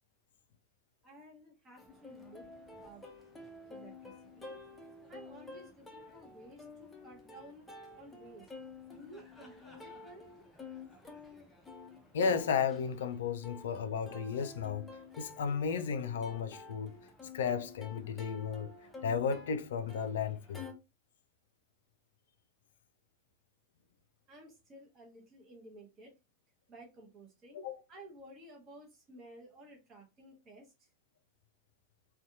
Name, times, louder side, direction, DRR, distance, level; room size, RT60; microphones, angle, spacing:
voice 1, 1.0-2.5 2.8-3.0 3.7-4.6 5.1-8.5 8.9-10.3 24.3-26.1 26.7-30.9, right 1 dB, 25° right, 0.9 m, -54 dB
Plucked string instrument, 1.8-20.7, left 3 dB, 10° left, 0.6 m, -51 dB
voice 2, 12.1-14.9 15.2-17.0 17.3-18.7 19.0-20.7 27.6-27.8, left 6 dB, 60° left, 0.3 m, -33 dB
2.6 x 2.2 x 2.6 m
figure-of-eight pair, 90°, 0 cm